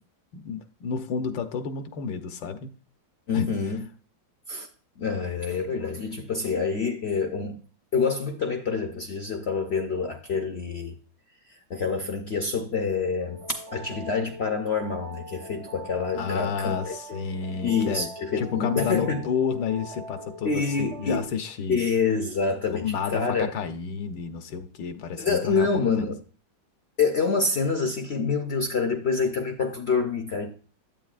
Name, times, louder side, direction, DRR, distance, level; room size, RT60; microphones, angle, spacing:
voice 1, 0.3-2.7 3.3-3.5 16.1-18.1 18.4-21.8 22.7-25.7 26.0-26.1, left 6 dB, 80° left, 1.6 m, -30 dB
voice 2, 3.3-3.8 4.5-4.7 5.0-7.6 7.9-11.0 11.7-16.9 17.6-19.3 20.4-21.3 21.7-23.5 25.2-26.2 27.0-30.5, left 5 dB, 60° left, 0.7 m, -27 dB
sound 1, 13.2-21.3, right 1 dB, 45° right, 0.4 m, -42 dB
9.1 x 8.4 x 2.4 m
omnidirectional pair, 2.0 m